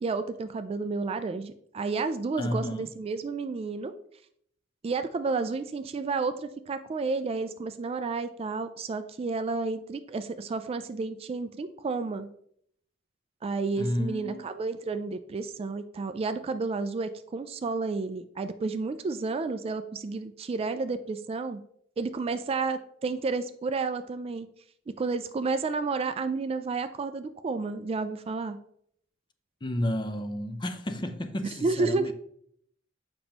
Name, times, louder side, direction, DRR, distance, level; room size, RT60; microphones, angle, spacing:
voice 1, 0.0-3.9 4.8-12.3 13.4-21.6 22.0-24.5 25.0-28.6 31.6-32.1, right 4 dB, 30° right, 0.3 m, -31 dB
voice 2, 2.4-2.9 13.8-14.4 29.6-32.1, left 1 dB, 25° left, 0.5 m, -31 dB
7.1 x 5.2 x 2.9 m
head